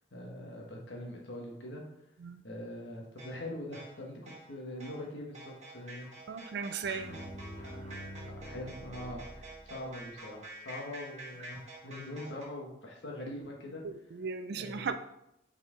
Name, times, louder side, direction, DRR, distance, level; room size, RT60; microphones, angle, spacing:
voice 1, 0.1-1.8 2.4-6.1 8.3-13.8 14.5-14.9, left 1 dB, 80° left, -1 dB, 1.1 m, -43 dB
sound 1, 3.2-12.4, right 2 dB, 40° right, 1.6 m, -49 dB
voice 2, 6.3-7.2 13.8-15.0, right 5 dB, 60° right, 9 dB, 0.4 m, -37 dB
sound 2, 6.8-10.0, equal, 40° left, 1.0 m, -46 dB
6.1 x 4.2 x 3.7 m, 0.83 s
head